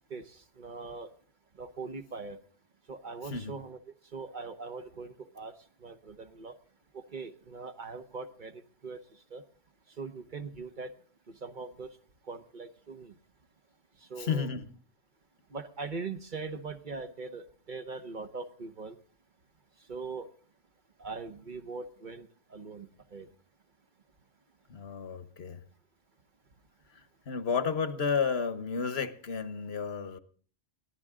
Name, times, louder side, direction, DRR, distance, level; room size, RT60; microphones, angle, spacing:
voice 1, 0.1-1.1 1.6-2.4 2.9-3.8 4.1-5.5 5.8-6.5 6.9-8.5 8.8-9.0 9.3-9.4 10.0-10.9 11.4-11.9 12.3-13.1 14.1-14.5 15.5-19.0 19.9-20.3 21.0-23.3, right 4 dB, 45° right, 1.1 m, -41 dB
voice 2, 3.2-3.6 14.2-14.7 24.7-25.6 26.9-30.2, left 5 dB, 65° left, 1.3 m, -32 dB
21.5 x 15.0 x 3.7 m
omnidirectional pair, 1.2 m